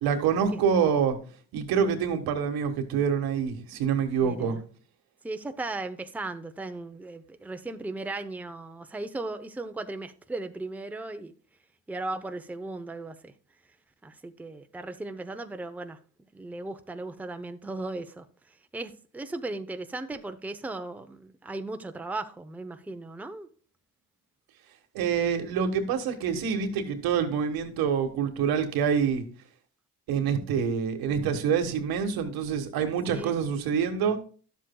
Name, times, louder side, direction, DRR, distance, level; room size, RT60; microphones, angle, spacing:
voice 1, 0.0-1.2 1.5-4.6 24.9-29.2 30.1-34.2, right 7 dB, 85° right, 1.5 m, -26 dB
voice 2, 4.2-4.6 5.2-11.3 11.9-13.3 14.0-16.0 16.3-18.3 18.7-23.5 33.1-33.3, right 2 dB, 5° right, 0.6 m, -37 dB
11.5 x 7.5 x 2.2 m
cardioid pair, 100°, 36 cm